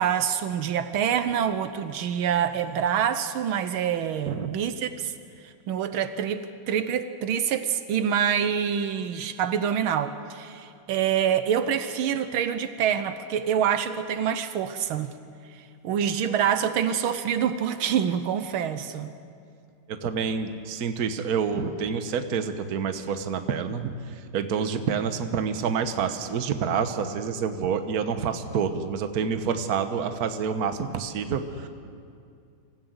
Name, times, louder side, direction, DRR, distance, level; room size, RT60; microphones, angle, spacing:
voice 1, 0.0-5.1 5.4-15.1 15.8-19.1, right 8 dB, 80° right, 11 dB, 1.6 m, -26 dB
voice 2, 19.9-23.9 24.3-31.7, right 6 dB, 50° right, 8 dB, 1.4 m, -28 dB
25.5 x 15.0 x 8.0 m, 2.4 s
omnidirectional pair, 2.3 m